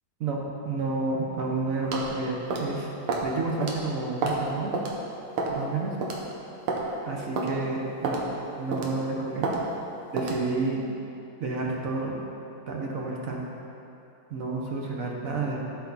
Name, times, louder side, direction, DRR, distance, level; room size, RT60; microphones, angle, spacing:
voice 1, 0.2-2.9 3.2-4.8 5.5-5.9 7.0-8.2 8.5-9.6 10.1-10.8 11.4-12.2 12.7-13.4 14.3-15.6, right 3 dB, 50° right, -2 dB, 1.1 m, -30 dB
sound 1, 1.9-2.1 2.5-2.7 3.1-3.3 3.6-3.8 4.2-4.4 4.7-4.9 5.4-5.6 6.0-6.2 6.7-6.8 7.4-7.5 8.0-8.2 8.7-9.0 9.4-9.6 10.2-10.4, right 3 dB, 75° right, 1.8 m, -28 dB
14.5 x 4.9 x 4.0 m, 2.8 s
omnidirectional pair, 2.4 m